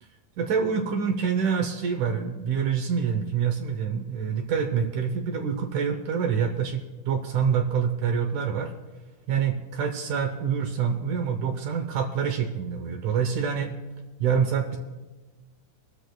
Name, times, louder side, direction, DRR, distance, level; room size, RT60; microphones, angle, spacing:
voice 1, 0.4-8.7 9.3-13.7 14.2-14.8, right 7 dB, 70° right, 5 dB, 2.2 m, -26 dB
25.5 x 13.0 x 2.3 m, 1.2 s
omnidirectional pair, 3.9 m